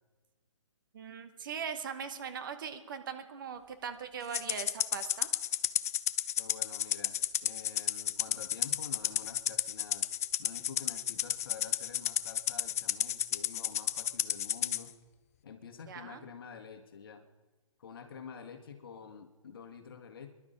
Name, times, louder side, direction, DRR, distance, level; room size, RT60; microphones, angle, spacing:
voice 1, 0.9-5.3 15.9-16.2, right 7 dB, 40° right, 9 dB, 1.1 m, -40 dB
Rattle (instrument), 4.3-14.8, left 11 dB, 30° left, 0.4 m, -32 dB
voice 2, 6.4-10.1 10.4-14.9 15.4-17.2 17.8-20.3, left 6 dB, 45° left, 7 dB, 1.7 m, -48 dB
23.5 x 11.5 x 5.2 m, 1.2 s
figure-of-eight pair, 135°, 16 cm